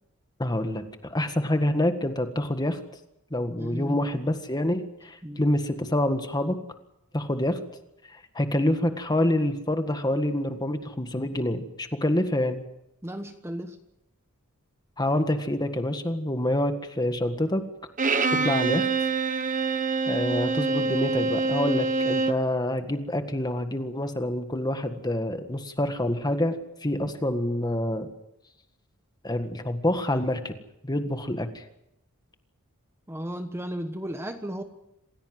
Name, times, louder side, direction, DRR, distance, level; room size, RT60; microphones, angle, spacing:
voice 1, 0.4-2.8 3.3-6.6 7.1-7.6 8.1-12.6 15.0-17.6 18.4-18.9 20.0-26.5 26.8-28.1 29.2-30.5 30.8-31.6, left 1 dB, 20° left, 7 dB, 1.7 m, -27 dB
voice 2, 3.6-4.0 5.2-5.5 13.0-13.8 18.3-18.5 33.1-34.6, right 1 dB, 10° right, 7 dB, 1.2 m, -34 dB
Bowed string instrument, 18.0-22.5, right 4 dB, 35° right, 1.2 m, -25 dB
27.0 x 16.5 x 7.8 m, 0.87 s
head